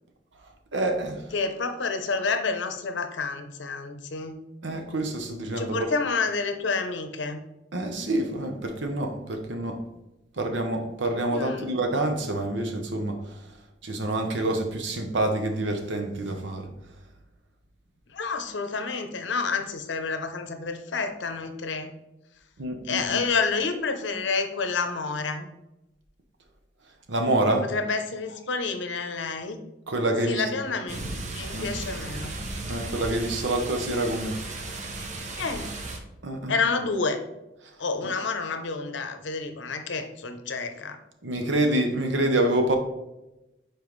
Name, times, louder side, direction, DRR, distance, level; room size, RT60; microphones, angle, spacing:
voice 1, 0.7-1.3 4.6-5.9 7.7-9.8 10.4-13.4 13.8-16.7 22.6-23.2 27.1-27.7 29.9-30.5 31.5-31.7 32.7-34.4 36.2-36.5 41.2-42.8, right 1 dB, 75° right, 5 dB, 0.9 m, -27 dB
voice 2, 1.3-4.4 5.6-7.4 11.3-11.8 18.1-21.9 22.8-25.5 27.7-29.6 30.3-32.4 35.3-35.7 36.5-37.2 37.8-41.0, left 4 dB, 75° left, 7 dB, 0.7 m, -29 dB
sound 1, 30.9-36.0, right 2 dB, 35° right, 0.7 m, -35 dB
7.1 x 4.5 x 3.2 m, 0.95 s
head